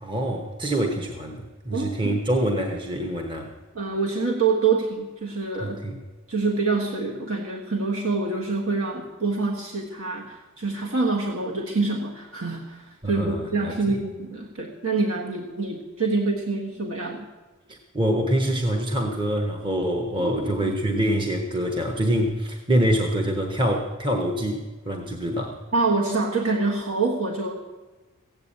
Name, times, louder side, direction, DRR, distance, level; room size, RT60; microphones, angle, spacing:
voice 1, 0.0-3.5 5.6-6.0 13.0-13.7 17.7-25.6, right 1 dB, 25° right, 3 dB, 1.0 m, -25 dB
voice 2, 1.7-2.2 3.7-5.8 6.3-17.2 20.2-20.7 25.7-27.6, right 3 dB, 70° right, 0 dB, 1.5 m, -26 dB
15.0 x 8.8 x 8.7 m, 1.2 s
head